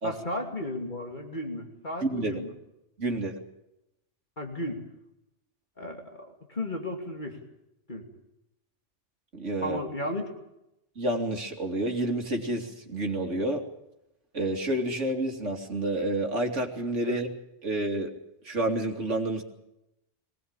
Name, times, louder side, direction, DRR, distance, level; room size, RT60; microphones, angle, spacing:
voice 1, 0.0-2.5 4.4-4.8 5.8-7.4 7.9-8.0 9.6-10.3 17.0-17.2, left 1 dB, 40° left, 2 dB, 3.0 m, -34 dB
voice 2, 2.0-2.4 3.0-3.4 9.3-9.8 11.0-13.6 14.3-17.3 17.6-18.1 18.4-19.4, right 1 dB, 80° right, 3 dB, 3.1 m, -29 dB
23.0 x 19.0 x 8.9 m, 0.88 s
omnidirectional pair, 1.2 m